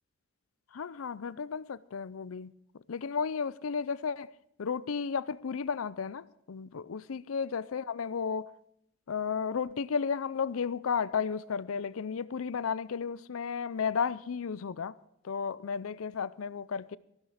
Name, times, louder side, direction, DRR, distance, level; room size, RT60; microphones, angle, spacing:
voice 1, 0.7-2.5 2.9-4.3 4.6-8.5 9.1-15.0 15.2-17.0, left 6 dB, 85° left, 0.5 m, -33 dB
14.5 x 12.0 x 4.9 m
head